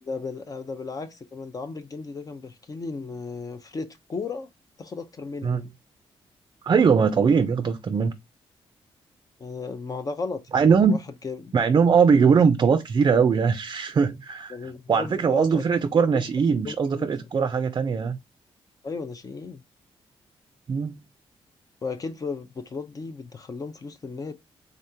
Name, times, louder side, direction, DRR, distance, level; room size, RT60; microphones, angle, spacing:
voice 1, 0.0-4.5 4.8-5.7 9.4-11.0 11.2-11.5 14.5-15.6 15.9-16.2 16.6-17.3 18.8-19.6 21.8-24.3, left 4 dB, 35° left, 0.6 m, -35 dB
voice 2, 6.6-8.1 10.5-11.0 11.5-14.6 14.9-18.2 20.7-21.0, right 6 dB, 40° right, 0.4 m, -21 dB
3.6 x 3.4 x 2.7 m
cardioid pair, 105°, 10 cm